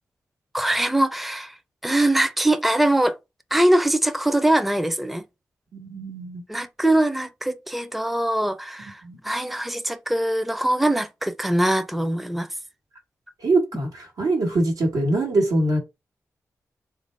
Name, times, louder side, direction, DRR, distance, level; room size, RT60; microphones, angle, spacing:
voice 1, 0.5-1.6 1.8-3.2 3.5-5.2 6.5-12.5, right 1 dB, ahead, 0.4 m, -22 dB
voice 2, 5.7-6.4 9.0-9.2 13.4-15.8, right 2 dB, 85° right, 1.2 m, -23 dB
3.5 x 2.5 x 3.2 m
cardioid pair, 50°, 6 cm